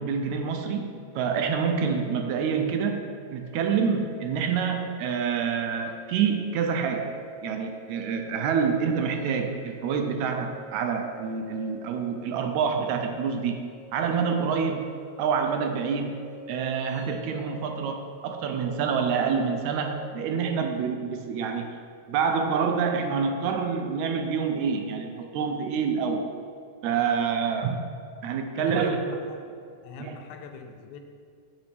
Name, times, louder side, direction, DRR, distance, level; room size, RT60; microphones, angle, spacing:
voice 1, 0.0-13.6 13.9-14.9 15.2-16.2 16.5-21.8 22.1-26.3 26.8-27.9 28.2-29.2 30.0-30.2, right 6 dB, 80° right, 5 dB, 1.8 m, -27 dB
sound 1, 3.4-19.9, right 3 dB, 5° right, 0.9 m, -48 dB
voice 2, 28.5-29.4 29.8-31.0, left 5 dB, 85° left, 6 dB, 1.9 m, -43 dB
7.1 x 6.8 x 3.4 m, 2.2 s
omnidirectional pair, 3.5 m